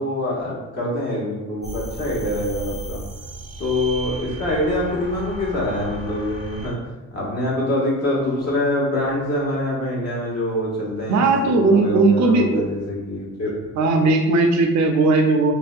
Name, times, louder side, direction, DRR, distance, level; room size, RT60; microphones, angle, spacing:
voice 1, 0.0-3.0 3.6-6.8 7.1-13.7, left 1 dB, 55° left, -5 dB, 1.0 m, -25 dB
sound 1, 1.6-6.7, right 2 dB, 35° left, 1.4 m, -34 dB
voice 2, 11.1-12.6 13.8-15.5, right 3 dB, 65° right, 3 dB, 0.5 m, -17 dB
2.6 x 2.1 x 2.4 m, 1.1 s
cardioid pair, 90°, 30 cm